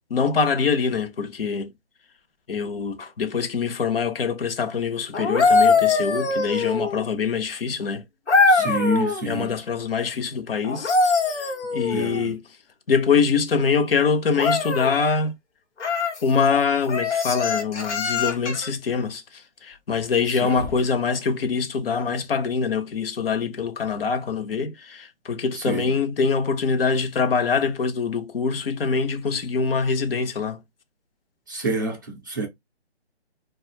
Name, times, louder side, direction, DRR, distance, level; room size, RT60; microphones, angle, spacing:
voice 1, 0.1-1.7 2.5-8.0 9.2-11.0 11.2-12.4 12.9-15.3 16.2-30.6, left 5 dB, 55° left, 0.7 m, -24 dB
sound 1, 5.1-7.1 8.3-9.2 10.6-12.3 14.3-15.0 15.8-16.2 16.9-18.7 20.5-20.7, left 4 dB, 85° left, 1.0 m, -22 dB
voice 2, 8.5-9.5 11.9-12.3 20.4-20.7 25.5-25.9 31.5-32.5, right 1 dB, 20° right, 0.4 m, -27 dB
2.5 x 2.3 x 3.0 m
hypercardioid pair, 160°, 34 cm